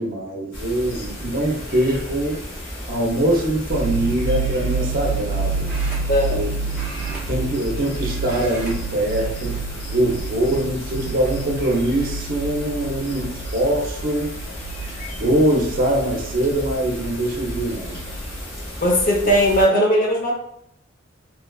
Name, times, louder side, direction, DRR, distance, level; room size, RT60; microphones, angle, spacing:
voice 1, 0.0-2.4 2.9-5.7 6.3-6.5 7.1-9.6 9.9-14.3 15.2-18.0, right 1 dB, 50° right, -1 dB, 0.6 m, -23 dB
sound 1, 0.5-19.7, equal, 90° left, 1.4 m, -33 dB
sound 2, 3.7-18.4, right 5 dB, 85° right, 0.3 m, -30 dB
sound 3, 5.7-6.4 6.7-7.9 8.2-8.8 9.1-9.3 10.1-10.7 11.2-11.3 12.8-12.9 13.2-13.6, right 1 dB, 5° right, 0.7 m, -38 dB
voice 2, 6.1-6.4 18.8-20.3, equal, 50° left, -1 dB, 0.7 m, -18 dB
2.9 x 2.3 x 2.2 m, 0.71 s
head